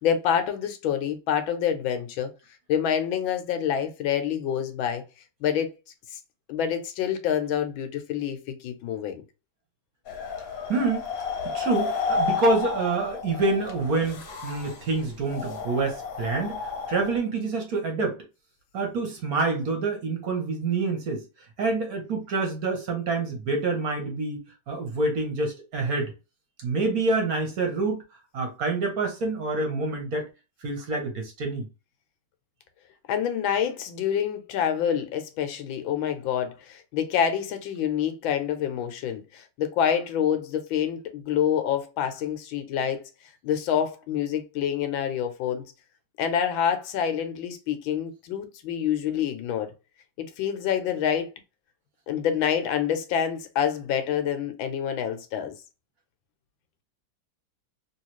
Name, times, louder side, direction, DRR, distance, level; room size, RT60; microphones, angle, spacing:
voice 1, 0.0-2.3 2.7-5.0 5.4-5.7 6.5-9.2 33.1-43.0 43.4-45.6 46.2-49.7 50.2-51.3 52.1-55.5, left 9 dB, 90° left, 1.5 m, -27 dB
sound 1, 10.1-17.2, left 5 dB, 55° left, 1.1 m, -32 dB
voice 2, 10.7-11.1 11.4-18.2 18.7-21.2 21.6-26.1 26.6-28.0 28.3-30.3 30.6-31.7, right 3 dB, 55° right, 1.2 m, -27 dB
3.1 x 3.1 x 3.0 m
omnidirectional pair, 2.1 m